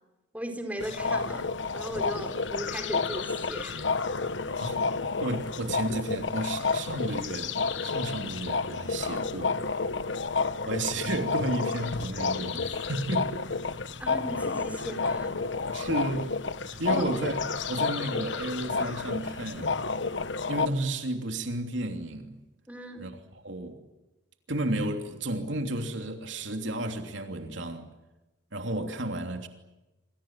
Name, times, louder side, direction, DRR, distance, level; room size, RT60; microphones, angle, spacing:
voice 1, 0.3-3.9 4.5-4.6 14.0-15.4 16.9-17.0 22.7-23.1, equal, 10° right, 4.4 m, -37 dB
sound 1, 0.8-20.7, left 4 dB, 70° left, 1.1 m, -30 dB
voice 2, 5.2-9.6 10.7-13.3 15.7-16.4 16.6-17.4 17.7-19.8 20.5-22.4 23.0-23.8 24.5-27.9 28.5-29.5, right 1 dB, 75° right, 3.0 m, -32 dB
27.0 x 27.0 x 7.6 m
head